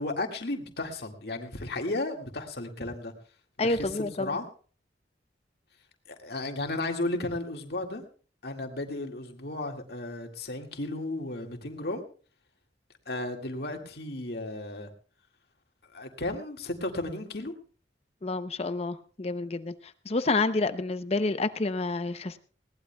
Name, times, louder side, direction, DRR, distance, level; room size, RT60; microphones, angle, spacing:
voice 1, 0.0-3.1 3.6-3.9 4.2-4.5 6.1-8.0 8.4-12.0 13.1-14.9 15.9-17.5, left 2 dB, 60° left, 3 dB, 2.0 m, -34 dB
voice 2, 3.6-4.4 18.2-19.7 20.1-22.4, left 3 dB, 35° left, 12 dB, 0.6 m, -29 dB
21.0 x 18.0 x 2.3 m, 0.39 s
head